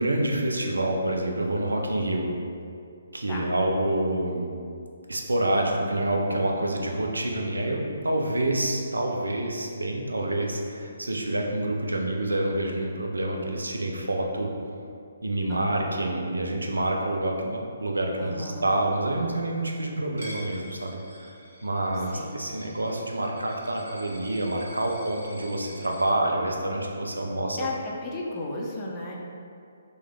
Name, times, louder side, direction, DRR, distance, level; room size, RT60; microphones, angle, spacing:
voice 1, 0.0-2.3 3.1-4.5 5.1-14.5 15.2-27.7, right 1 dB, 75° right, 1 dB, 0.4 m, -27 dB
voice 2, 15.5-16.0 18.2-18.7 22.1-22.5 27.6-29.2, left 2 dB, 20° left, -3 dB, 0.4 m, -35 dB
Coin (dropping), 20.2-26.0, right 1 dB, 60° right, 0.8 m, -47 dB
3.2 x 2.2 x 3.3 m, 2.4 s
figure-of-eight pair, 135°, 0 cm